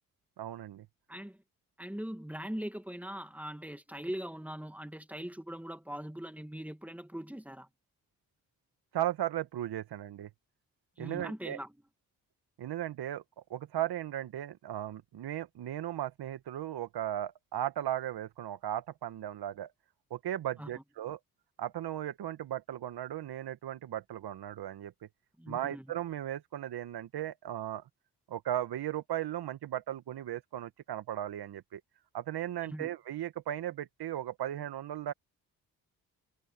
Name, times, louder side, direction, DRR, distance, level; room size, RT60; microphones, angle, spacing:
voice 1, 0.4-0.8 8.9-10.3 11.0-11.6 12.6-13.2 13.5-19.7 20.1-21.2 21.6-24.9 25.5-27.8 28.3-31.8 32.1-35.1, right 12 dB, 70° right, 1.7 m, -36 dB
voice 2, 1.8-7.7 11.0-11.8 20.6-20.8 25.4-26.0 32.6-32.9, equal, 5° right, 2.4 m, -41 dB
supercardioid pair, 45°, 40 cm